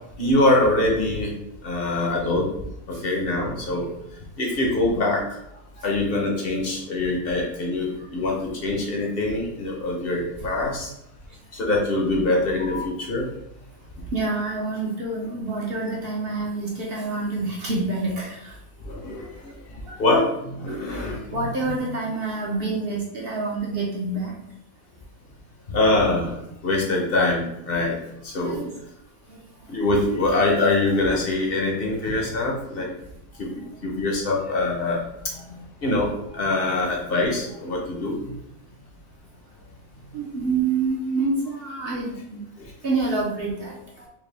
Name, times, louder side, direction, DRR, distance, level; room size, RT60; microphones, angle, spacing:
voice 1, 0.2-1.3 1.6-2.5 3.0-3.9 4.4-5.2 5.8-10.9 11.5-13.3 18.9-19.5 20.0-21.2 21.6-21.7 25.7-26.4 26.6-28.0 28.2-28.6 29.7-32.9 33.4-35.0 35.3-36.1 36.3-38.1 42.6-42.7, left 2 dB, 45° left, -1 dB, 0.8 m, -24 dB
voice 2, 14.1-18.6 19.9-20.0 20.7-24.3 28.3-28.7 29.3-29.4 33.6-33.7 40.1-42.5 42.8-44.1, right 3 dB, 50° right, -2 dB, 0.7 m, -28 dB
4.9 x 2.2 x 3.3 m, 0.82 s
omnidirectional pair, 1.8 m